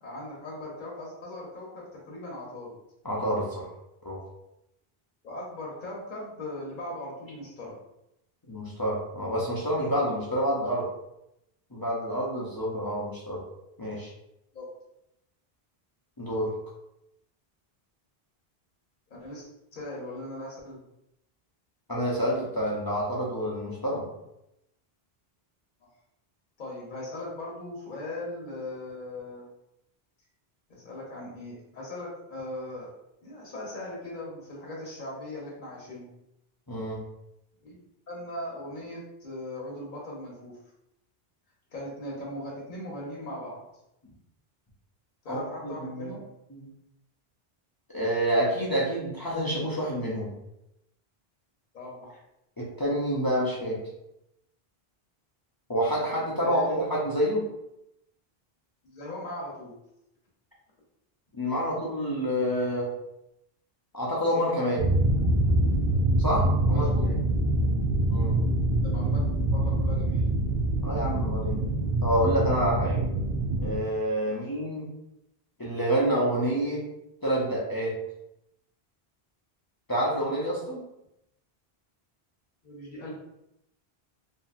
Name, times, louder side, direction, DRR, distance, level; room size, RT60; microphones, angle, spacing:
voice 1, 0.0-2.8 5.2-7.8 14.5-14.7 19.1-20.8 26.6-29.4 30.7-32.9 33.2-36.1 37.6-37.8 38.1-40.6 41.7-43.6 45.2-46.2 51.7-52.1 56.4-56.8 58.8-59.8 66.7-67.1 68.8-69.2 69.5-70.3 74.2-74.5 82.6-83.2, left 1 dB, 55° left, -4 dB, 0.8 m, -39 dB
voice 2, 3.0-3.7 4.0-4.2 8.5-10.9 11.7-13.4 13.8-14.1 16.2-16.5 21.9-24.1 36.7-37.1 45.3-46.1 46.5-46.7 47.9-50.4 52.6-53.9 55.7-57.5 61.3-62.9 63.9-64.9 66.2-67.1 68.1-68.5 70.8-71.6 72.0-73.0 73.6-74.9 75.6-76.9 77.2-78.0 79.9-80.8, equal, 35° left, -6 dB, 0.4 m, -28 dB
sound 1, 64.8-73.8, right 1 dB, 60° right, 0.6 m, -25 dB
2.6 x 2.6 x 2.4 m, 0.85 s
omnidirectional pair, 1.0 m